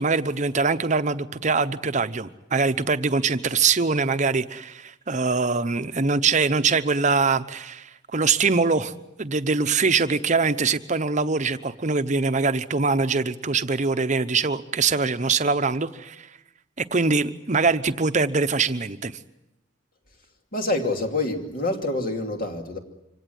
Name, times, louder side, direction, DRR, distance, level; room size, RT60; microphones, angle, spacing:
voice 1, 0.0-7.9 8.1-8.9 9.2-16.2 16.8-19.1, right 4 dB, 40° right, 11 dB, 0.9 m, -23 dB
voice 2, 20.5-22.8, left 2 dB, 50° left, 4 dB, 2.7 m, -26 dB
25.5 x 17.5 x 9.4 m, 0.93 s
head